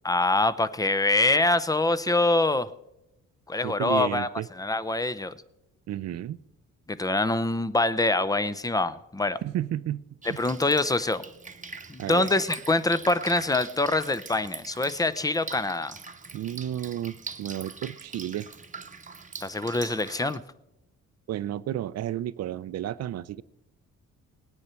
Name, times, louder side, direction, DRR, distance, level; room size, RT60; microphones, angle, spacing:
voice 1, 0.0-2.7 3.5-4.3 4.6-5.3 6.9-9.4 10.3-11.2 11.9-16.0 19.4-20.4, left 2 dB, 10° left, 17 dB, 0.6 m, -25 dB
voice 2, 3.6-4.5 5.9-6.4 9.4-10.0 10.3-10.4 12.0-12.3 16.3-18.5 21.3-23.4, right 12 dB, 55° right, 19 dB, 0.5 m, -32 dB
Drip, 10.2-20.4, right 4 dB, 25° right, 1.0 m, -42 dB
18.5 x 9.6 x 4.4 m, 0.91 s
cardioid pair, 90°, 30 cm